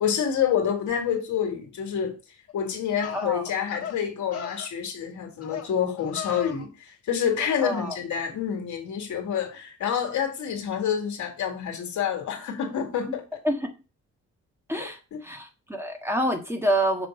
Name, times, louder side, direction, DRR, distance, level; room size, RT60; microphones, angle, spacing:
voice 1, 0.0-2.2 2.5-13.4 14.8-15.2, left 8 dB, 75° left, 2.1 m, -28 dB
sound 1, 2.5-2.6 3.0-3.3 3.7-4.0 4.3-4.7 5.4-5.7 6.0-6.7 7.4-7.9, left 8 dB, 55° left, 1.5 m, -37 dB
voice 2, 3.1-3.5 7.6-8.0 13.4-13.7 14.7-17.1, right 1 dB, 10° right, 1.5 m, -27 dB
7.1 x 3.4 x 5.2 m
cardioid pair, 90°, 30 cm